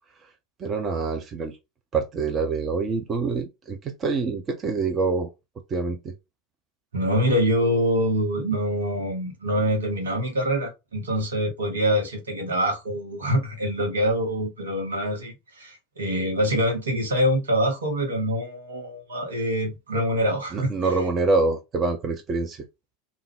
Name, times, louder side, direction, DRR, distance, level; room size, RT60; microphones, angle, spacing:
voice 1, 0.6-1.6 1.9-5.3 5.7-6.1 20.5-22.6, right 3 dB, 30° right, 0.7 m, -26 dB
voice 2, 6.9-20.7, equal, 70° right, 1.2 m, -25 dB
3.6 x 2.5 x 3.5 m
figure-of-eight pair, 80°, 0 cm